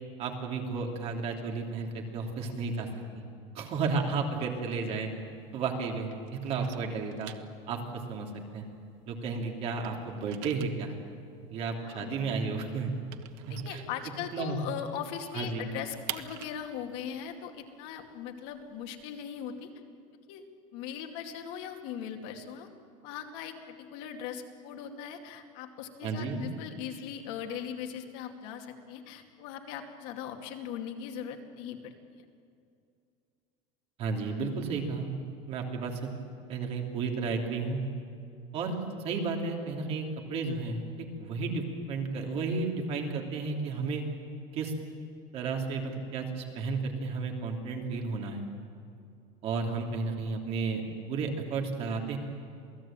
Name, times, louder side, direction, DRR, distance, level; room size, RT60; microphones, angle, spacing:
voice 1, 0.2-2.9 3.1-3.2 3.5-5.1 5.5-7.3 7.7-7.8 8.1-8.6 9.1-10.9 11.5-12.9 13.5-13.8 14.3-14.6 15.3-15.7 26.0-26.5 34.0-35.1 35.5-36.1 36.5-37.8 38.5-44.0 44.5-44.7 45.3-48.5 49.4-50.8 51.1-52.2, right 4 dB, 35° right, 2 dB, 3.2 m, -33 dB
sound 1, 4.3-5.8 6.0-9.3 9.6-14.6 14.9-15.0 15.3-19.0, right 14 dB, 65° right, 1.3 m, -46 dB
voice 2, 11.8-12.2 13.5-19.7 20.3-20.5 20.7-22.7 23.0-31.9, left 8 dB, 60° left, 4 dB, 2.4 m, -39 dB
28.0 x 18.5 x 9.0 m, 2.5 s
cardioid pair, 175°, 17 cm